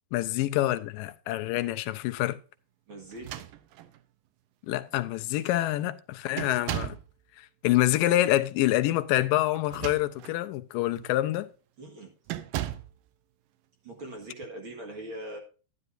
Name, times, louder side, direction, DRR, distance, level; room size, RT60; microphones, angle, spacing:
voice 1, 0.1-2.4 4.7-7.0 7.4-11.5, left 15 dB, 90° left, 2.4 m, -26 dB
voice 2, 2.9-3.5 11.8-12.1 13.8-15.4, right 1 dB, 45° right, 2.2 m, -41 dB
sound 1, 3.1-4.0 4.9-5.0 5.3-5.7 6.4-7.1 9.5-10.4 11.0-11.2 12.3-13.0, right 13 dB, 80° right, 2.4 m, -36 dB
11.0 x 11.0 x 2.6 m
omnidirectional pair, 3.9 m